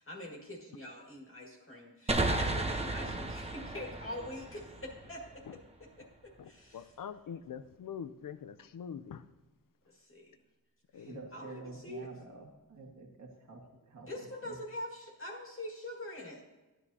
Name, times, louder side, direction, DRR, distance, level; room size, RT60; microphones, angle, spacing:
voice 1, 0.0-5.4 5.8-6.9 9.9-10.3 10.9-12.1 14.0-16.4, left 1 dB, 35° left, -1 dB, 1.8 m, -44 dB
sound 1, 2.1-5.6, right 2 dB, 15° right, 0.8 m, -34 dB
voice 2, 6.4-9.2 10.9-11.2, left 7 dB, 70° left, 12 dB, 0.6 m, -44 dB
voice 3, 11.1-13.6 13.9-14.6, right 3 dB, 50° right, 0 dB, 1.7 m, -49 dB
13.5 x 10.0 x 2.7 m, 1.2 s
wide cardioid pair, 120°, 35 cm